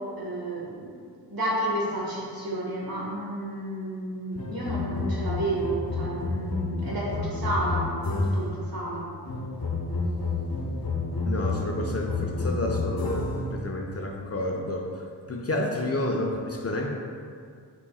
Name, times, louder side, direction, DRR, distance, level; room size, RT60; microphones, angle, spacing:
voice 1, 0.2-0.9 1.3-9.1, right 1 dB, 55° right, -5 dB, 1.3 m, -31 dB
sound 1, 4.3-8.6 9.3-13.5, left 3 dB, 60° left, 0.8 m, -30 dB
voice 2, 11.2-16.9, left 1 dB, 35° left, 0 dB, 0.5 m, -30 dB
5.7 x 3.8 x 2.3 m, 2.1 s
wide cardioid pair, 100°, 41 cm